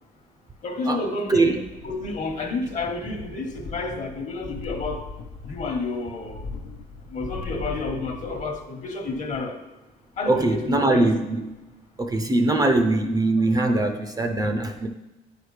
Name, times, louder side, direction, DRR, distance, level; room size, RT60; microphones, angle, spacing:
voice 1, 0.6-1.6 1.8-5.1 5.4-6.4 7.1-9.6 10.2-11.1, left 3 dB, 45° left, 4 dB, 1.1 m, -30 dB
voice 2, 1.3-1.6 10.3-11.5 12.0-14.9, right 2 dB, 20° right, 5 dB, 0.5 m, -22 dB
sound 1, 1.6-3.1 3.3-8.7 9.0-9.1, left 3 dB, 90° left, 0.9 m, -39 dB
9.0 x 4.9 x 3.2 m, 1.1 s
cardioid pair, 110°, 17 cm